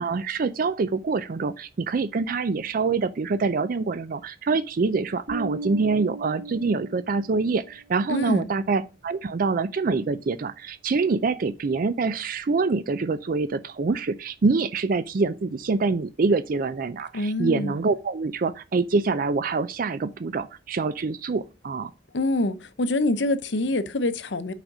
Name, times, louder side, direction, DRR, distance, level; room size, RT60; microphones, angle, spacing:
voice 1, 0.0-21.9, right 4 dB, 50° right, 0.4 m, -25 dB
Bass guitar, 5.3-7.7, right 2 dB, 75° right, 2.4 m, -37 dB
voice 2, 8.1-8.5 17.1-17.8 22.1-24.5, left 2 dB, 70° left, 0.7 m, -25 dB
6.2 x 5.0 x 6.1 m
head